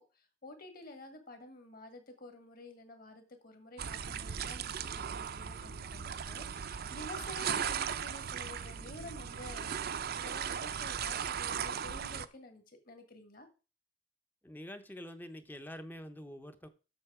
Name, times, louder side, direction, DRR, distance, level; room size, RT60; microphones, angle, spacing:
voice 1, 0.0-13.5, left 2 dB, 45° left, 7 dB, 1.6 m, -50 dB
sound 1, 3.8-12.2, right 7 dB, 45° right, 0.5 m, -37 dB
voice 2, 14.4-16.7, equal, 10° left, 9 dB, 0.6 m, -46 dB
7.9 x 6.3 x 4.7 m, 0.33 s
head